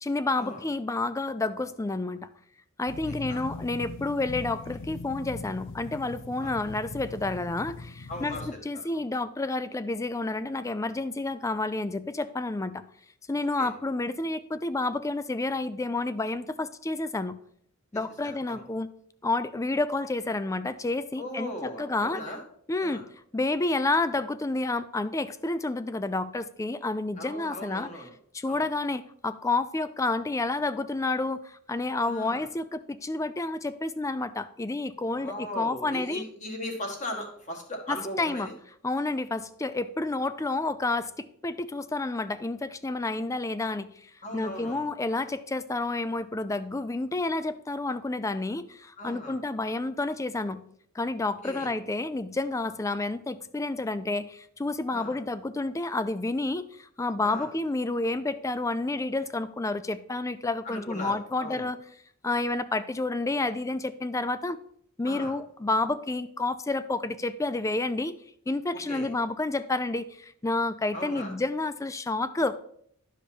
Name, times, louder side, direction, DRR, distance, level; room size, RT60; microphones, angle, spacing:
voice 1, 0.0-2.3 2.8-12.8 13.3-17.4 17.9-18.9 19.2-22.2 22.7-23.0 23.3-27.9 28.3-36.3 37.9-38.5 38.8-50.6 50.9-61.8 62.2-64.6 65.0-68.2 68.5-72.6, left 2 dB, 15° left, 13 dB, 0.4 m, -30 dB
sound 1, 2.9-8.5, left 3 dB, 60° left, 0.6 m, -40 dB
voice 2, 3.1-3.4 6.4-6.5 8.1-8.5 8.9-9.0 13.6-13.7 18.5-18.6 21.2-22.4 22.8-23.0 27.2-28.1 28.5-28.6 32.0-32.5 35.1-38.5 44.2-44.9 49.0-49.4 51.4-51.7 54.9-55.2 57.2-57.5 60.6-61.7 65.0-65.3 68.9-69.1 70.9-71.3, left 1 dB, 35° left, 1 dB, 1.9 m, -38 dB
11.5 x 5.1 x 4.3 m, 0.67 s
head